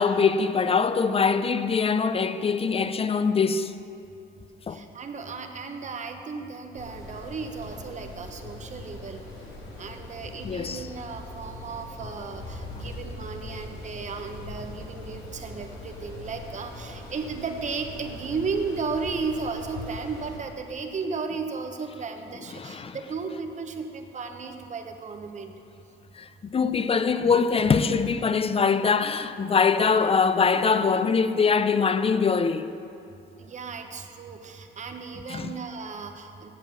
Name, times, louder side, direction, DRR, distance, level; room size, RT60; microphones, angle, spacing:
voice 1, 0.0-3.7 4.7-4.8 10.4-10.8 22.6-23.0 26.2-32.7 35.3-35.5, left 5 dB, 30° left, 0.5 m, -23 dB
voice 2, 4.7-9.2 9.8-25.5 33.4-36.5, right 4 dB, 35° right, 0.9 m, -34 dB
sound 1, 6.7-20.4, left 2 dB, 85° left, 2.2 m, -41 dB
7.9 x 7.5 x 7.1 m
cardioid pair, 90°, 20 cm